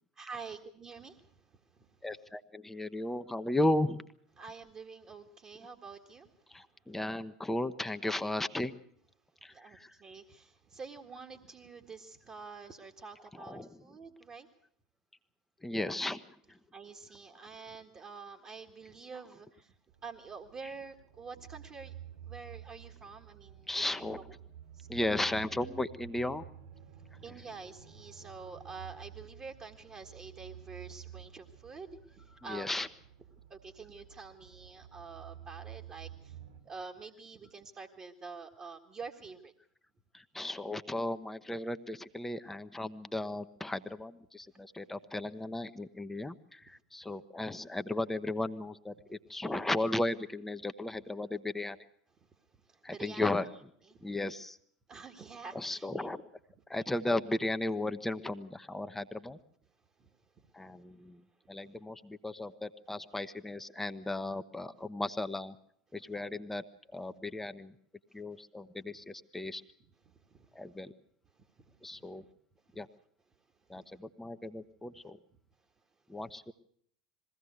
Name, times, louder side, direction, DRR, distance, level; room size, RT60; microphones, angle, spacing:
voice 1, 0.2-1.9 4.4-6.7 9.5-14.5 16.7-19.8 20.0-21.9 22.3-24.2 24.7-24.9 27.1-32.7 33.5-36.4 36.6-39.5 52.3-52.4 52.6-53.3 53.9-54.1 54.9-56.1 60.0-60.1 60.4-60.5 70.1-70.6 71.6-72.3 72.7-72.8 73.7-73.8, right 4 dB, 30° right, 1 dB, 1.8 m, -48 dB
voice 2, 2.0-4.0 6.5-8.8 9.4-9.9 13.3-13.7 15.6-16.2 16.5-16.6 23.7-24.2 24.9-26.4 32.5-32.9 40.1-51.8 52.8-53.5 54.0-54.6 55.5-56.2 56.7-59.4 60.5-61.2 61.5-65.6 65.9-66.6 66.9-67.7 68.1-69.6 70.5-70.9 71.8-72.2 72.7-72.9 73.7-75.2 76.1-76.5, left 2 dB, 10° left, 9 dB, 0.9 m, -35 dB
sound 1, 19.9-36.6, right 10 dB, 65° right, 3.8 m, -51 dB
21.5 x 16.5 x 8.1 m, 0.65 s
figure-of-eight pair, 80°, 3 cm